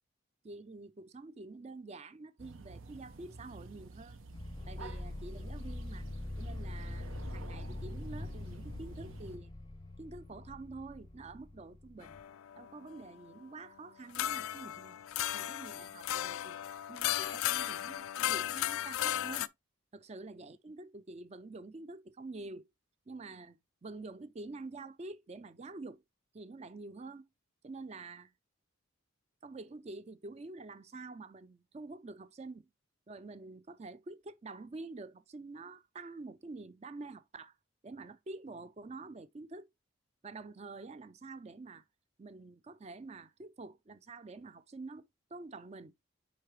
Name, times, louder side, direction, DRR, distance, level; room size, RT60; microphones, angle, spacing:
voice 1, 0.4-4.2 4.7-6.1 6.4-9.5 10.0-12.2 12.6-15.0 15.3-16.6 16.9-19.5 19.9-22.7 23.1-26.0 26.3-27.3 27.6-28.3 29.4-32.7 33.1-37.5 37.8-39.7 40.2-41.8 42.2-45.9, right 3 dB, 30° right, 0.4 m, -47 dB
sound 1, 2.4-9.4, right 3 dB, 75° right, 0.8 m, -51 dB
sound 2, 4.3-12.2, left 1 dB, 20° left, 0.6 m, -43 dB
sound 3, 12.0-13.0 14.1-19.5, left 12 dB, 85° left, 0.4 m, -35 dB
9.5 x 3.3 x 3.1 m
head